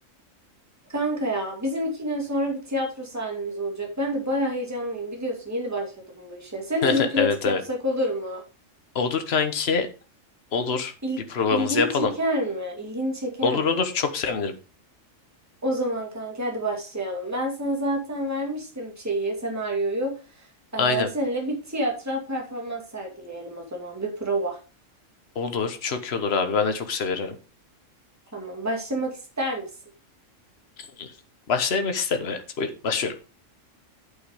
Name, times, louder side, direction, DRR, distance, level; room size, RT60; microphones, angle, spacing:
voice 1, 0.9-8.4 11.0-13.8 15.6-20.2 20.7-24.6 28.3-29.6, right 1 dB, 10° right, 0 dB, 2.3 m, -28 dB
voice 2, 6.8-7.6 8.9-9.9 10.5-10.9 11.3-12.1 13.4-14.5 20.8-21.1 25.3-27.4 31.0-31.1 31.5-33.2, left 5 dB, 50° left, 7 dB, 1.4 m, -25 dB
8.6 x 6.2 x 4.9 m, 0.34 s
omnidirectional pair, 1.4 m